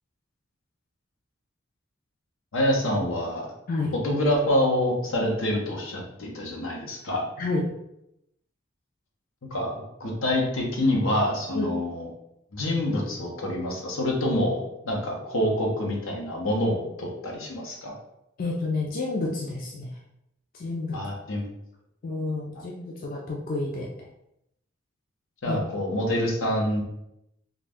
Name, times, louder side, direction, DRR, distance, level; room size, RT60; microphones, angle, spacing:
voice 1, 2.5-3.5 4.0-7.2 9.5-9.7 10.0-12.1 12.5-17.9 20.9-21.4 25.4-26.8, left 1 dB, 80° left, -1 dB, 0.8 m, -26 dB
voice 2, 7.4-7.7 11.5-11.7 18.4-19.9 20.5-21.0 22.0-23.9 25.5-25.6, left 3 dB, 45° left, -1 dB, 0.4 m, -29 dB
2.5 x 2.2 x 3.4 m, 0.82 s
head